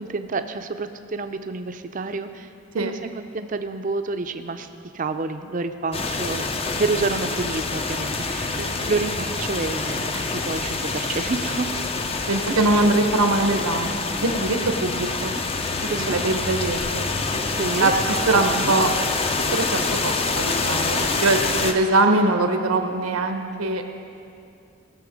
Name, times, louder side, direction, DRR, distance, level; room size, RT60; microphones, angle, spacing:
voice 1, 0.0-2.5 2.7-4.7 4.9-6.4 6.8-10.0 10.3-11.7 12.5-12.7 15.8-16.2 17.6-17.9 18.3-18.7 21.5-21.7, right 3 dB, 35° right, 8 dB, 0.5 m, -28 dB
sound 1, 5.9-21.7, left 3 dB, 25° left, 0.5 m, -26 dB
voice 2, 12.3-15.4 16.1-17.1 17.8-18.9 19.5-23.8, right 2 dB, 90° right, 5 dB, 1.0 m, -22 dB
17.5 x 6.9 x 5.1 m, 2.5 s
head